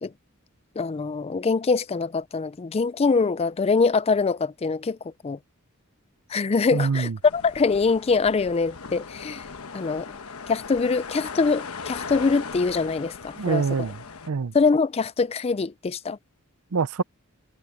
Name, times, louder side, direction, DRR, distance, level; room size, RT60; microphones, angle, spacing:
voice 1, 0.8-5.4 6.3-9.5 9.7-10.2 10.5-13.6 14.5-16.2, left 4 dB, 30° left, 0.4 m, -24 dB
voice 2, 6.7-7.2 13.4-14.0 14.3-14.5 16.7-17.0, right 5 dB, 80° right, 0.6 m, -25 dB
sound 1, 7.2-14.3, left 5 dB, 80° left, 1.2 m, -38 dB
head